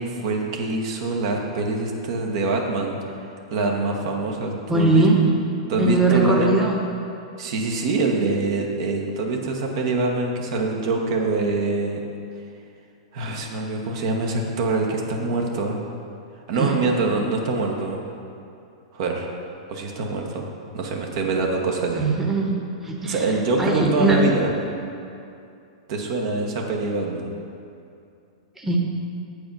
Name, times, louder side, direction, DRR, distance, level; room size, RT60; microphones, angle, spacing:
voice 1, 0.0-3.0 3.5-5.0 5.7-6.5 7.4-12.0 13.1-15.8 16.5-18.0 18.9-19.4 19.7-20.5 20.7-22.0 23.0-24.5 25.9-27.3, right 3 dB, 60° right, 1 dB, 1.0 m, -24 dB
voice 2, 4.7-5.2 5.8-6.8 16.6-16.8 22.0-22.5 22.8-23.2 23.6-24.2 28.6-28.8, right 2 dB, 10° right, -1 dB, 1.0 m, -20 dB
7.7 x 4.8 x 5.3 m, 2.6 s
hypercardioid pair, 110°, 3 cm